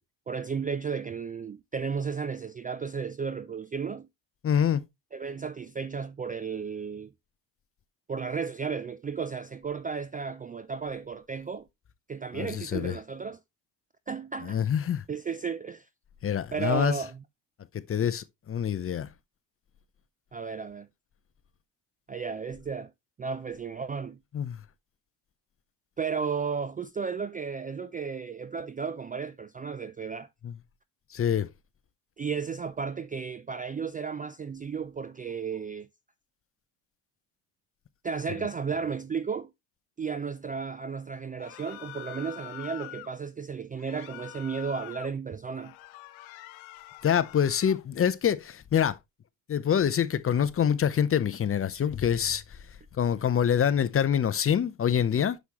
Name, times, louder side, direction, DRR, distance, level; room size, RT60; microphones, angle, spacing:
voice 1, 0.3-4.1 5.1-7.1 8.1-11.7 12.1-13.4 14.1-14.6 15.1-15.9 16.5-17.2 20.3-20.9 22.1-22.9 23.2-24.2 26.0-30.3 32.2-35.9 38.0-39.5 40.0-45.7, right 6 dB, 20° right, 0.4 m, -34 dB
voice 2, 4.4-4.8 12.3-13.0 14.4-15.0 16.2-16.9 17.7-19.1 24.3-24.6 30.4-30.5 31.1-31.5 47.0-49.0 49.5-52.4 53.0-55.4, left 8 dB, 30° left, 0.7 m, -26 dB
sound 1, 41.4-43.1 43.8-45.1 45.5-47.8, left 16 dB, 75° left, 1.0 m, -45 dB
8.0 x 6.4 x 2.9 m
supercardioid pair, 85°, 47 cm